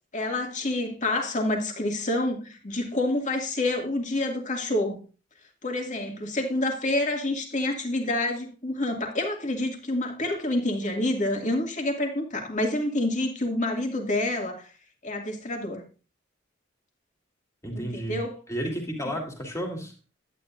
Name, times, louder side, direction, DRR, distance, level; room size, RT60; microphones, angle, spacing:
voice 1, 0.1-5.0 5.6-14.7 15.0-15.8 17.7-18.4, left 1 dB, 40° left, 3 dB, 2.3 m, -28 dB
voice 2, 17.6-19.9, equal, 15° left, 1 dB, 2.9 m, -32 dB
11.5 x 9.9 x 2.6 m, 0.34 s
head